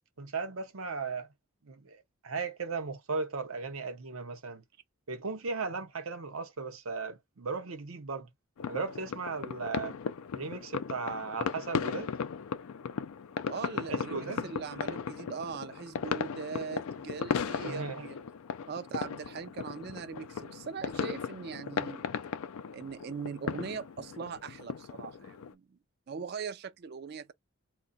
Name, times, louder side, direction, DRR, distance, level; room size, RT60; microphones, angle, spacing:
voice 1, 0.2-1.3 1.6-4.6 5.1-8.3 8.7-10.0 10.4-12.1 13.9-14.5 17.6-18.1, right 4 dB, 85° right, 0.8 m, -36 dB
sound 1, 8.6-25.5, left 6 dB, 90° left, 0.4 m, -37 dB
voice 2, 13.5-18.2 18.7-22.1 22.7-25.8 26.1-27.3, right 6 dB, 50° right, 0.4 m, -40 dB
2.2 x 2.2 x 3.8 m
head